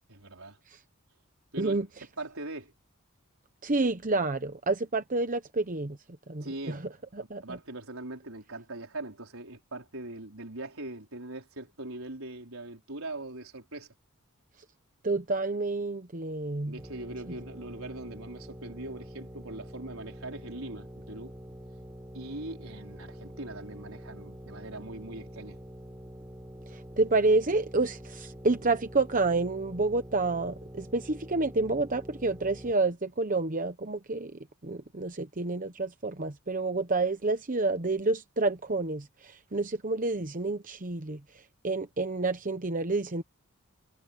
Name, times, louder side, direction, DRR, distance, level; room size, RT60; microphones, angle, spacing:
voice 1, 0.1-0.6 1.5-1.8 2.2-2.7 6.4-6.9 7.2-13.9 16.7-21.3 22.1-25.6, right 2 dB, 80° right, 4.6 m, -41 dB
voice 2, 3.6-6.0 6.3-6.8 7.1-7.6 15.0-16.8 26.7-34.3 34.6-41.2 41.6-43.2, right 3 dB, 40° right, 1.0 m, -29 dB
sound 1, 16.8-32.7, equal, 15° right, 4.1 m, -46 dB
head